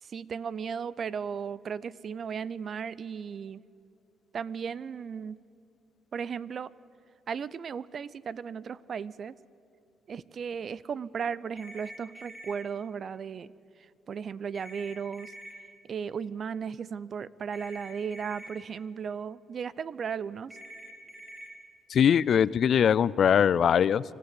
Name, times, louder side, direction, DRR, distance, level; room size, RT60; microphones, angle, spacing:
voice 1, 0.0-3.6 4.3-5.4 6.1-6.7 7.3-9.3 10.1-13.5 14.1-15.3 15.8-20.6, right 6 dB, 50° right, 19 dB, 0.5 m, -35 dB
sound 1, 11.6-12.6 14.5-15.5 17.5-18.5 20.5-21.5, right 1 dB, 10° right, 4.7 m, -46 dB
voice 2, 21.9-24.0, left 8 dB, 60° left, 21 dB, 0.4 m, -22 dB
25.0 x 14.0 x 8.3 m, 2.5 s
cardioid pair, 90°, 0 cm